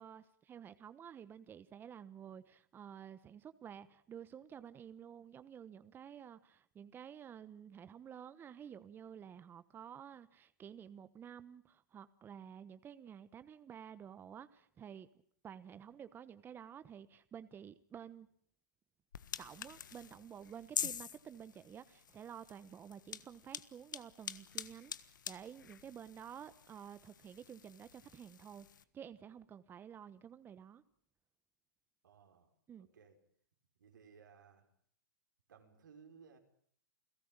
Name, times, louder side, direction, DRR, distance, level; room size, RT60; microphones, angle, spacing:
voice 1, 0.0-15.1 15.4-18.3 19.4-28.7 28.9-30.8 32.7-32.9, right 8 dB, 20° right, 14 dB, 1.1 m, -51 dB
sound 1, 19.1-28.8, left 8 dB, 85° left, 1.5 m, -46 dB
voice 2, 32.0-32.5 32.8-33.2 33.8-34.7 35.5-36.4, right 6 dB, 85° right, 4 dB, 5.4 m, -60 dB
29.5 x 17.5 x 8.9 m, 0.63 s
hypercardioid pair, 125°, 10 cm